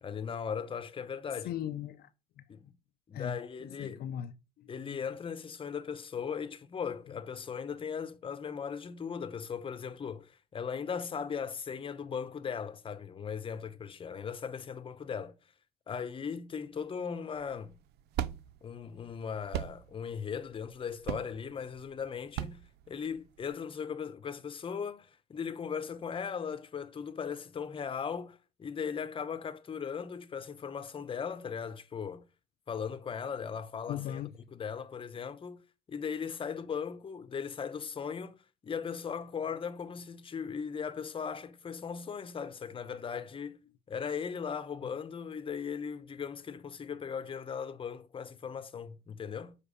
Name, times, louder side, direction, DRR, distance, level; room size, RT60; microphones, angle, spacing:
voice 1, 0.0-1.5 2.5-2.6 3.1-4.0 4.7-15.3 15.9-17.7 18.6-22.6 22.9-32.2 32.7-35.6 35.9-38.4 38.6-43.6 43.9-49.5, left 6 dB, 30° left, 0.9 m, -38 dB
voice 2, 1.4-2.1 2.4-2.5 3.1-5.0 33.9-34.3 44.8-44.9, left 10 dB, 65° left, 0.6 m, -39 dB
sound 1, 17.3-23.5, right 11 dB, 75° right, 0.5 m, -39 dB
7.0 x 4.7 x 6.8 m
cardioid pair, 110°, 17 cm